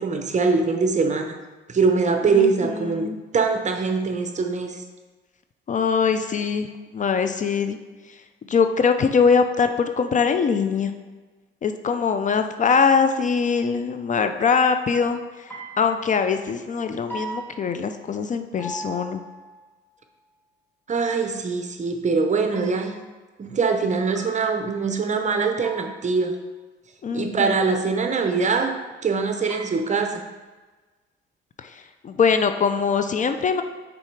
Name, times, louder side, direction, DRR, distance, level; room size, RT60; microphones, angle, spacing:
voice 1, 0.0-1.4 1.7-4.8 20.9-22.9 23.4-26.4 27.1-28.8 29.0-30.2, right 4 dB, 35° right, 5 dB, 0.7 m, -23 dB
voice 2, 2.3-3.2 5.7-7.8 8.5-10.9 11.6-15.5 15.8-19.2 27.0-27.6 31.6-33.6, left 5 dB, 40° left, 8 dB, 0.4 m, -22 dB
sound 1, 15.5-16.3 17.1-18.3 18.6-19.6 22.5-23.2 24.1-24.9 25.6-26.3 29.5-30.3, right 2 dB, 10° left, 1.6 m, -39 dB
5.7 x 4.0 x 4.6 m, 1.3 s
cardioid pair, 90°, 20 cm